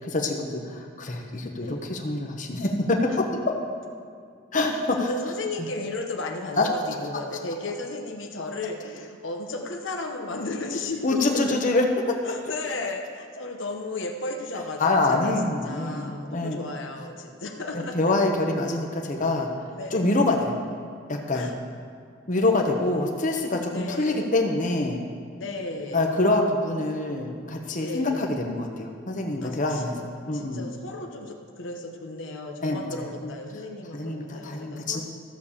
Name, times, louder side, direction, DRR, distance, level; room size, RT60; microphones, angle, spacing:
voice 1, 0.2-3.2 4.5-5.1 6.6-6.7 11.0-12.4 14.8-16.6 17.7-19.5 19.9-20.6 21.1-21.5 22.3-25.0 25.9-29.9 30.3-30.6 32.6-33.3 33.9-35.0, left 2 dB, 40° left, 2 dB, 1.1 m, -25 dB
voice 2, 4.9-11.4 12.2-14.8 15.1-15.3 15.6-18.0 19.7-20.1 21.3-21.8 22.3-22.8 23.7-24.3 25.3-26.0 27.7-28.3 29.4-30.0 30.3-35.0, left 2 dB, 75° left, 3 dB, 1.1 m, -34 dB
13.5 x 6.7 x 7.2 m, 2.2 s
head